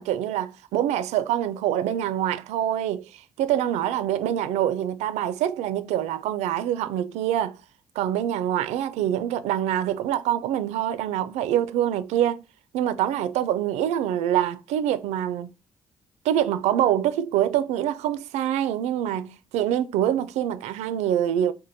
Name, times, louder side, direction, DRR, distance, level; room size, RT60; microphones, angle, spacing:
voice 1, 0.0-7.6 8.0-12.4 12.7-15.5 16.2-21.5, right 11 dB, 75° right, 0.4 m, -25 dB
4.4 x 2.2 x 2.6 m
hypercardioid pair, 50°, 11 cm